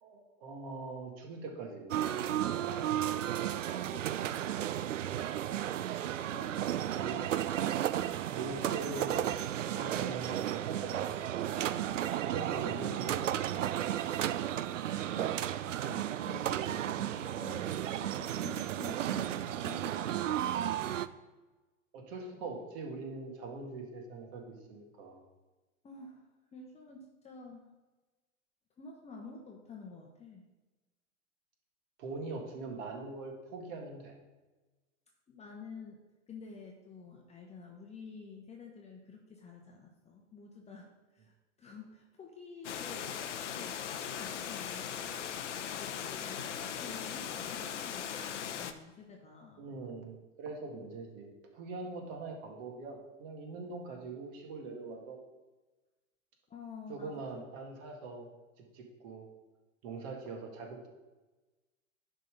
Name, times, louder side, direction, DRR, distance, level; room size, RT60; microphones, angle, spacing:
voice 1, 0.0-1.9 7.0-7.2 8.3-11.6 12.2-14.0 21.9-25.2 32.0-34.1 49.6-55.2 56.9-58.3 58.7-59.3 59.8-60.9, right 3 dB, 45° right, 1 dB, 2.0 m, -42 dB
sound 1, 1.9-21.1, right 11 dB, 75° right, 0.5 m, -33 dB
voice 2, 2.7-3.1 3.5-4.3 6.2-7.2 15.1-21.0 25.8-27.7 28.8-30.4 35.3-36.0 36.3-45.2 45.7-49.7 56.5-57.2, left 4 dB, 15° left, 0 dB, 1.0 m, -50 dB
Water, 42.6-48.7, left 9 dB, 65° left, 0.8 m, -39 dB
10.5 x 3.8 x 5.1 m, 1.2 s
figure-of-eight pair, 95°, 39 cm